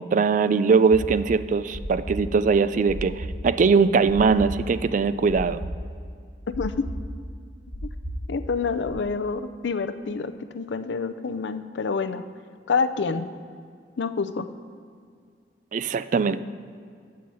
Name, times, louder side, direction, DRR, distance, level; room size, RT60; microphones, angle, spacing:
voice 1, 0.0-5.6 15.7-16.4, right 5 dB, 45° right, 14 dB, 0.3 m, -21 dB
sound 1, 0.9-8.9, equal, 20° right, 1.7 m, -35 dB
voice 2, 8.3-12.2 12.7-13.3 14.0-14.5, left 5 dB, 85° left, 10 dB, 0.5 m, -27 dB
8.5 x 5.6 x 7.6 m, 2.2 s
head